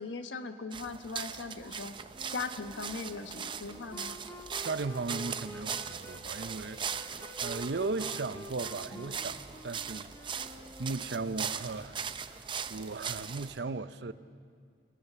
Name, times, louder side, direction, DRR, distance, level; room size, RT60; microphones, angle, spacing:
voice 1, 0.0-1.9 2.3-4.2 8.9-9.1, left 4 dB, 90° left, 1.2 m, -39 dB
sound 1, 0.7-13.6, right 7 dB, 25° right, 0.6 m, -40 dB
Wind instrument woodwind instrument, 2.1-11.6, left 1 dB, 15° left, 1.5 m, -49 dB
voice 2, 4.6-10.1 10.8-12.0 12.7-14.1, right 3 dB, 65° right, 0.6 m, -36 dB
28.0 x 18.5 x 6.8 m
head